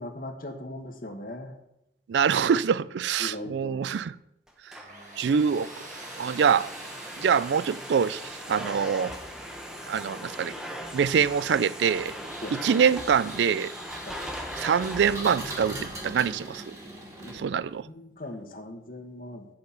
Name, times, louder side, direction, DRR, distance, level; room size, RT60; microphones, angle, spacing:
voice 1, 0.0-1.5 3.2-3.8 12.4-12.7 14.0-14.2 17.2-17.4 17.8-19.5, left 1 dB, 50° left, 1.2 m, -39 dB
voice 2, 2.1-4.1 5.2-5.7 6.2-6.7 7.2-9.1 9.9-10.5 10.9-12.1 12.5-13.7 14.6-16.8 17.3-17.8, right 7 dB, 90° right, 0.3 m, -24 dB
Domestic sounds home sounds, 4.5-15.1, equal, 5° right, 0.9 m, -39 dB
Tools, 4.8-13.6, right 2 dB, 45° right, 1.9 m, -49 dB
Engine, 12.0-17.7, right 1 dB, 20° right, 1.8 m, -40 dB
7.9 x 6.0 x 7.0 m
head